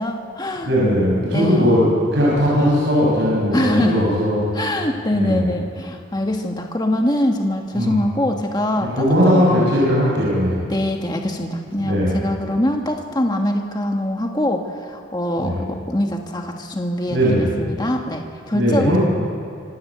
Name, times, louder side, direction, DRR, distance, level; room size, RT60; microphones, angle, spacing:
voice 1, 0.0-0.7 1.3-1.8 3.5-4.1 4.5-9.4 10.7-19.0, left 1 dB, 20° left, 3 dB, 1.4 m, -23 dB
voice 2, 0.6-1.8 2.1-4.4 5.1-5.4 7.7-8.0 8.9-10.5 11.8-12.1 15.4-15.5 17.1-17.4 18.5-19.0, equal, 60° right, -6 dB, 6.7 m, -18 dB
26.5 x 16.0 x 8.4 m, 2.5 s
head